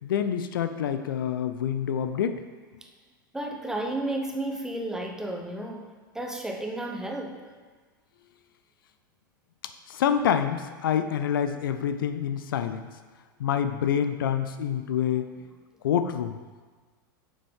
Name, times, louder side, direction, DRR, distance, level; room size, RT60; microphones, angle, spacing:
voice 1, 0.0-2.4 9.9-12.9 13.4-15.3 15.8-16.4, left 8 dB, 75° left, 10 dB, 0.5 m, -27 dB
voice 2, 3.3-5.9 6.1-7.4, right 1 dB, 5° right, 2 dB, 1.0 m, -32 dB
9.0 x 7.1 x 3.7 m, 1.4 s
hypercardioid pair, 95°, 12 cm